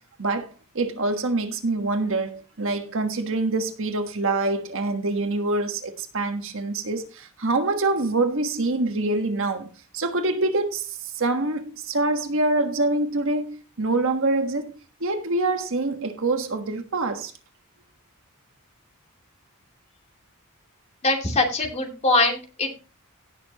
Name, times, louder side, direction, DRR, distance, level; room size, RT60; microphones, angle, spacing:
voice 1, 0.2-14.7 15.0-17.3, right 2 dB, 60° right, 1.4 m, -25 dB
voice 2, 21.0-22.7, left 2 dB, 30° left, 2.7 m, -22 dB
17.5 x 6.9 x 3.0 m
head